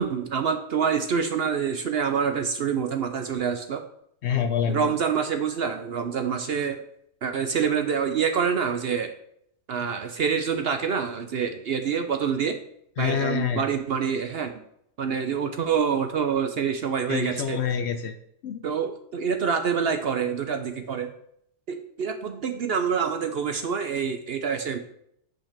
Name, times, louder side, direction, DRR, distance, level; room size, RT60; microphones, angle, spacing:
voice 1, 0.0-3.8 4.7-6.8 7.2-9.1 9.7-12.6 13.0-14.5 15.0-17.6 18.6-21.1 21.7-24.8, right 6 dB, 60° right, 7 dB, 0.7 m, -26 dB
voice 2, 4.2-4.9 13.0-13.6 17.1-18.1 18.4-18.6, left 8 dB, 65° left, 9 dB, 0.7 m, -26 dB
5.9 x 5.4 x 6.5 m, 0.73 s
omnidirectional pair, 1.5 m